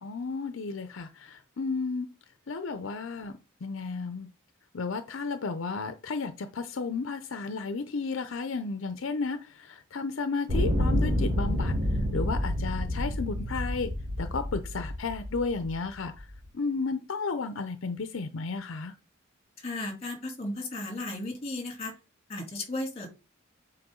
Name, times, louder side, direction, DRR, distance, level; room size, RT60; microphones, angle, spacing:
voice 1, 0.0-2.1 2.5-4.3 4.7-11.7 12.1-13.9 14.2-16.3 16.5-18.9, left 4 dB, 70° left, 0.6 m, -33 dB
sound 1, 10.5-15.7 16.5-16.6, left 1 dB, 45° right, 3.7 m, -28 dB
voice 2, 19.6-21.9 22.3-23.1, left 2 dB, 30° left, 2.8 m, -35 dB
7.7 x 4.6 x 3.8 m
head